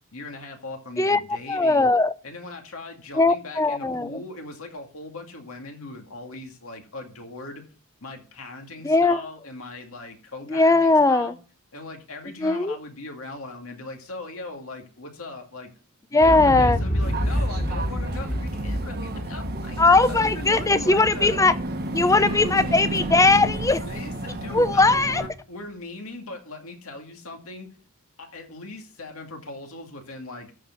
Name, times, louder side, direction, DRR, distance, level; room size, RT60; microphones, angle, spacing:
voice 1, 0.1-1.9 2.2-7.6 8.0-11.4 11.7-15.7 16.1-21.5 22.2-22.6 23.8-27.7 28.2-30.5, left 2 dB, 70° left, 2.3 m, -39 dB
voice 2, 1.5-2.1 3.2-4.2 8.8-9.2 10.5-11.3 12.4-12.7 16.1-16.8 19.8-21.5 21.9-23.8 24.5-25.2, left 3 dB, 15° left, 0.5 m, -19 dB
Explosion, 16.2-22.2 22.5-22.6, equal, 35° left, 2.7 m, -29 dB
sound 1, 17.0-25.3, right 2 dB, 45° right, 1.2 m, -32 dB
14.0 x 4.7 x 5.9 m
head